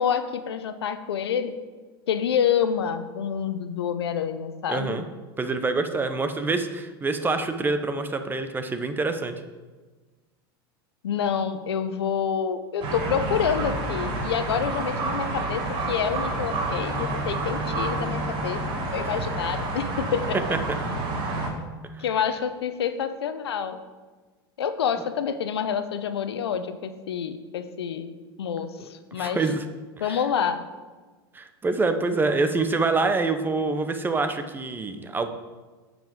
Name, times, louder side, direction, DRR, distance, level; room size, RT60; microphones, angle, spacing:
voice 1, 0.0-1.5 2.1-5.0 11.0-20.4 22.0-23.8 24.6-28.1 28.4-29.4 30.0-30.6, left 7 dB, 90° left, 10 dB, 0.8 m, -27 dB
voice 2, 4.7-5.0 5.4-9.4 20.5-20.6 21.9-22.0 28.8-29.6 30.0-30.2 31.3-35.3, right 3 dB, 15° right, 8 dB, 0.8 m, -26 dB
sound 1, 12.8-21.5, right 2 dB, 40° right, 2.1 m, -29 dB
9.3 x 5.1 x 5.2 m, 1.3 s
hypercardioid pair, 110°, 13 cm